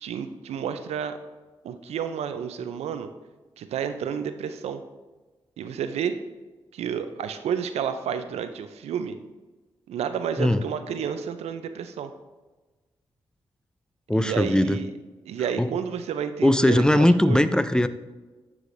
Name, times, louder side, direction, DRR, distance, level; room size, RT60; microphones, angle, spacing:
voice 1, 0.0-1.2 1.6-3.1 3.6-4.8 5.6-6.2 6.7-9.2 9.9-12.1 14.1-14.9 15.3-17.4, right 7 dB, 85° right, 10 dB, 0.4 m, -30 dB
voice 2, 14.1-14.8 15.6-15.8 16.4-17.9, left 1 dB, 5° left, 12 dB, 0.4 m, -20 dB
9.8 x 4.9 x 2.6 m, 1.2 s
supercardioid pair, 45°, 11 cm